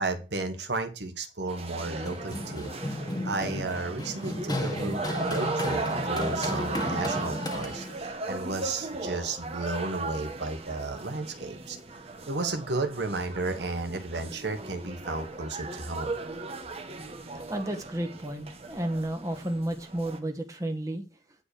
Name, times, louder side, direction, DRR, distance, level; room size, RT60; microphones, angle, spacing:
voice 1, 0.0-11.8 12.3-16.2, right 3 dB, 70° right, 5 dB, 1.6 m, -33 dB
sound 1, 1.5-20.2, right 3 dB, 35° right, 1.4 m, -37 dB
Run, 1.7-8.1, left 1 dB, 20° left, 1.7 m, -34 dB
voice 2, 17.2-21.0, right 1 dB, 20° right, 4 dB, 1.6 m, -32 dB
9.8 x 5.0 x 6.8 m, 0.31 s
head